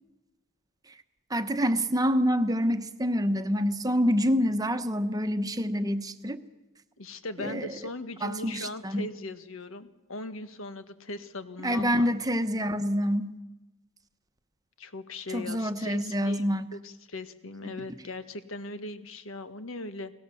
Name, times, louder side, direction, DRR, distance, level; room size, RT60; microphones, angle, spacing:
voice 1, 1.3-6.4 7.4-7.7 8.2-9.1 11.6-13.4 15.3-16.7 17.6-17.8, equal, 15° right, 10 dB, 1.1 m, -27 dB
voice 2, 7.0-12.1 14.8-16.4 16.7-20.1, left 2 dB, 70° left, 10 dB, 1.6 m, -39 dB
30.0 x 19.5 x 7.1 m, 1.0 s
head